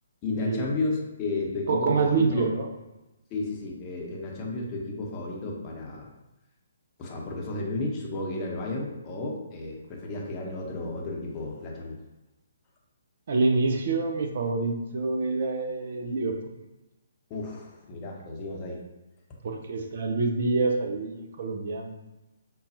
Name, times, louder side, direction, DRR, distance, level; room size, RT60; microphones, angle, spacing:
voice 1, 0.2-2.4 3.3-6.1 7.0-12.0 17.3-18.8 19.5-19.6, left 2 dB, 25° left, -2 dB, 0.8 m, -33 dB
voice 2, 1.7-2.7 13.3-16.4 19.4-22.0, right 3 dB, 50° right, 3 dB, 0.4 m, -26 dB
5.2 x 2.3 x 2.7 m, 1.0 s
figure-of-eight pair, 135°, 0 cm